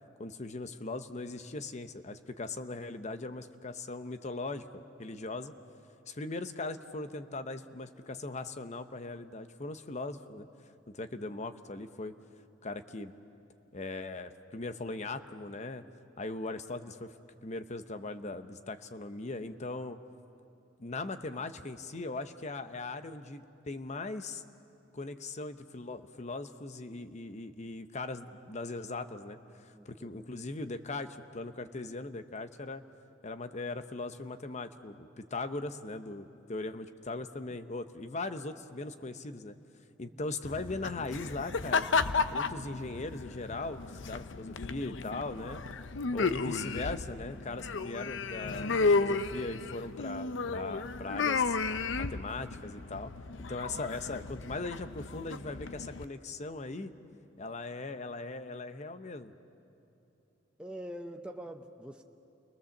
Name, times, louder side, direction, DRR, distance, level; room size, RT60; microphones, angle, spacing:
voice 1, 0.2-5.5 6.1-10.5 10.9-12.1 12.6-13.1 13.7-15.8 16.2-17.1 17.4-20.0 20.8-24.4 24.9-32.8 33.2-39.6 40.0-41.9 42.3-45.6 46.1-51.6 52.0-53.1 53.5-56.9 57.4-59.3, left 3 dB, 40° left, 10 dB, 0.9 m, -39 dB
voice 2, 29.7-30.2 40.0-40.2 46.0-46.1 60.6-62.0, right 1 dB, 5° right, 4 dB, 0.7 m, -44 dB
sound 1, 40.4-56.0, left 4 dB, 70° left, 0.7 m, -33 dB
29.0 x 21.0 x 7.2 m, 2.9 s
head